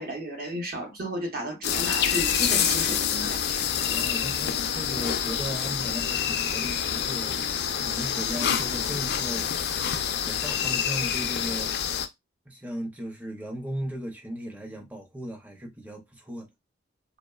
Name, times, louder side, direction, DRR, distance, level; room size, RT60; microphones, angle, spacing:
voice 1, 0.0-3.6, right 1 dB, 50° right, 0.7 m, -33 dB
sound 1, 1.6-12.1, left 8 dB, 55° left, 0.3 m, -27 dB
voice 2, 3.9-9.6 10.2-11.7 12.5-16.5, right 1 dB, 10° right, 0.5 m, -37 dB
2.8 x 2.0 x 2.2 m
head